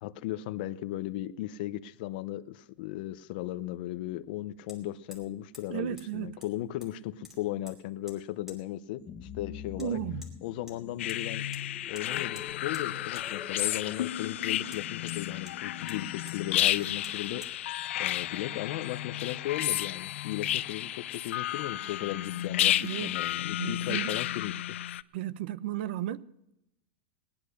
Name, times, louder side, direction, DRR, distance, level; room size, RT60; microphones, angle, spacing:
voice 1, 0.0-10.0 10.4-11.4 11.9-17.7 18.0-24.8, left 14 dB, 50° left, 0.7 m, -36 dB
Hammer, 2.8-2.9 4.7-4.8 5.1-5.3 5.5-5.7 6.0-6.1 6.4-7.0 7.2-7.8 8.1-8.2 8.5-8.6 9.8-9.9 10.2-10.3 10.7-11.2 11.5-11.6 11.9-12.1 12.3-12.9 13.1-13.3 13.6-13.7 14.7-15.6 15.9-16.0 16.3-16.4 16.7-16.8 17.0-17.2 17.4-17.5, left 2 dB, 5° right, 2.6 m, -49 dB
voice 2, 5.7-6.4 9.8-10.3 22.8-23.2 23.6-24.2 25.1-26.3, right 12 dB, 60° right, 0.7 m, -34 dB
sound 1, 9.0-14.1, left 8 dB, 20° left, 1.0 m, -46 dB
sound 2, 11.0-25.0, left 13 dB, 85° left, 0.5 m, -32 dB
19.0 x 10.5 x 6.5 m
supercardioid pair, 170°, 7 cm